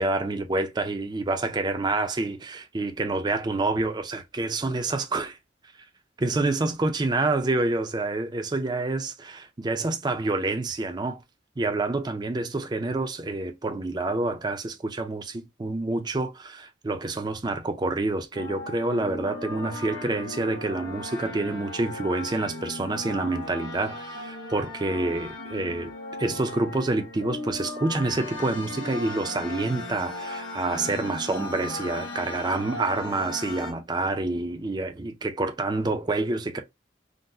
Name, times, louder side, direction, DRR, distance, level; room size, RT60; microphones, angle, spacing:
voice 1, 0.0-5.4 6.2-11.2 11.6-25.9 26.2-36.6, right 2 dB, 25° right, 0.4 m, -28 dB
sound 1, 18.3-33.7, left 2 dB, 85° left, 1.3 m, -37 dB
3.8 x 2.0 x 2.6 m
head